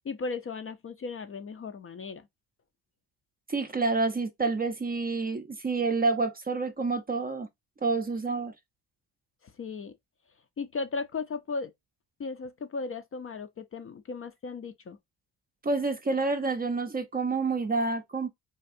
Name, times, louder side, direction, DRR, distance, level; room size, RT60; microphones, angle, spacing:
voice 1, 0.0-2.3 9.4-9.9 10.6-11.7 12.2-15.0, left 4 dB, 35° left, 0.5 m, -36 dB
voice 2, 3.5-7.5 7.8-8.5 15.6-18.3, right 3 dB, 20° right, 0.5 m, -28 dB
3.4 x 2.3 x 2.6 m
supercardioid pair, 65°, 42 cm